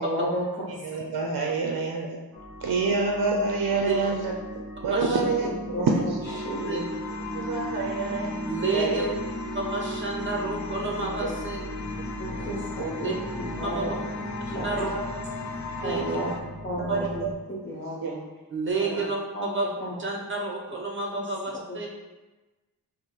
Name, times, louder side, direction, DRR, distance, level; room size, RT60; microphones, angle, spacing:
voice 1, 0.0-0.7 5.4-5.9 6.4-6.9 12.2-14.0 14.5-14.9 15.8-16.3 16.6-18.2 18.9-19.0 19.3-19.5 19.8-20.0 21.1-21.2 21.7-21.8, equal, 30° left, -8 dB, 0.8 m, -32 dB
voice 2, 0.8-2.2 2.6-4.3 4.8-5.5 5.8-6.4 7.3-8.4 8.7-9.1 11.2-11.3 12.3-12.5 12.8-13.1 14.8-15.0 16.9-17.3 18.0-18.1 18.8-19.1, right 4 dB, 65° right, 1 dB, 0.5 m, -27 dB
sound 1, 2.3-17.3, equal, ahead, 0.8 m, -37 dB
sound 2, 6.3-16.4, left 3 dB, 50° left, 0.4 m, -37 dB
voice 3, 8.5-9.1 9.5-11.6 13.0-13.1 13.6-13.9 14.5-14.9 15.8-16.0 16.9-17.0 18.5-19.2 19.4-19.7 20.0-21.9, right 3 dB, 30° right, -1 dB, 0.8 m, -30 dB
5.3 x 2.1 x 3.1 m, 1.2 s
wide cardioid pair, 85°, 38 cm